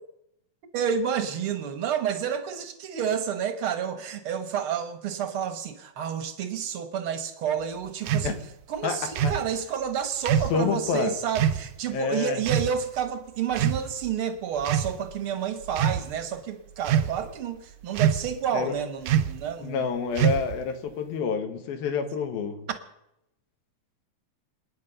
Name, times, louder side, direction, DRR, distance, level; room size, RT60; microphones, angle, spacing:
voice 1, 0.7-8.3 8.7-19.9, right 8 dB, 60° right, 8 dB, 1.4 m, -30 dB
sound 1, 8.1-8.3 9.2-9.4 10.3-10.6 11.4-11.6 12.5-12.7 13.5-14.1 14.6-14.9 15.7-16.0 16.9-17.3 18.0-18.4 19.1-19.4 20.2-20.6, right 9 dB, 75° right, 1.8 m, -24 dB
voice 2, 8.8-9.3 10.5-11.1 11.9-12.4 18.5-18.8 19.6-22.7, left 5 dB, 90° left, 7 dB, 3.3 m, -28 dB
27.5 x 9.5 x 5.5 m, 0.84 s
omnidirectional pair, 4.1 m